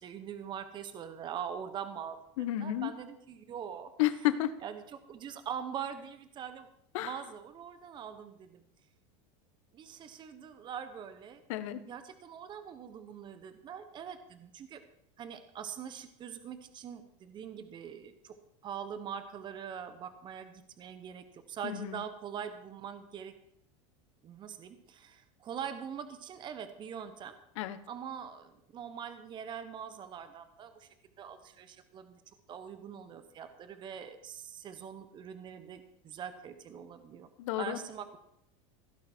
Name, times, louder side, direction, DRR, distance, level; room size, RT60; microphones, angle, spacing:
voice 1, 0.0-3.9 4.6-6.7 7.0-8.6 9.7-11.4 11.8-14.8 15.2-18.3 18.6-23.3 24.2-27.4 27.9-30.9 31.2-32.2 32.5-37.3 37.6-38.2, right 8 dB, 30° right, 10 dB, 1.1 m, -43 dB
voice 2, 2.4-2.9 4.0-4.5 6.9-7.1 11.5-11.8 21.6-21.9 27.6-27.8 37.4-37.8, left 14 dB, 70° left, 13 dB, 1.2 m, -31 dB
16.0 x 10.5 x 4.5 m, 0.74 s
supercardioid pair, 140°, 17 cm